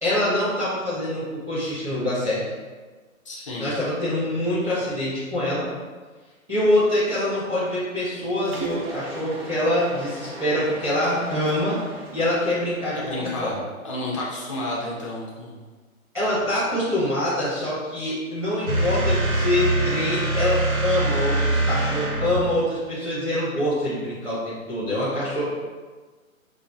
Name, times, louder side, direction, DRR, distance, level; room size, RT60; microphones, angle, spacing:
voice 1, 0.0-2.4 3.6-5.7 6.5-11.8 12.1-13.7 16.1-25.6, left 1 dB, 5° right, -13 dB, 0.9 m, -25 dB
voice 2, 3.3-3.7 12.9-13.5 13.8-15.6, left 1 dB, 25° left, -5 dB, 0.5 m, -31 dB
Mechanisms, 8.4-13.5, right 2 dB, 45° right, 0.6 m, -38 dB
sound 1, 18.7-22.6, right 2 dB, 90° right, 1.0 m, -23 dB
5.8 x 2.0 x 2.5 m, 1.3 s
hypercardioid pair, 150°, 42 cm